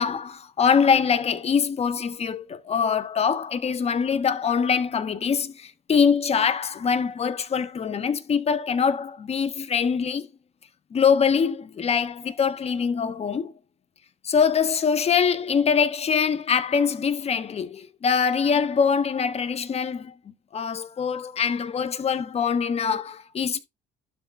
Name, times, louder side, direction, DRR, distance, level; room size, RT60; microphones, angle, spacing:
voice 1, 0.0-10.3 10.9-13.5 14.2-20.2 20.5-23.6, left 6 dB, 40° left, 1.2 m, -23 dB
12.0 x 4.2 x 3.6 m
cardioid pair, 110°, 17 cm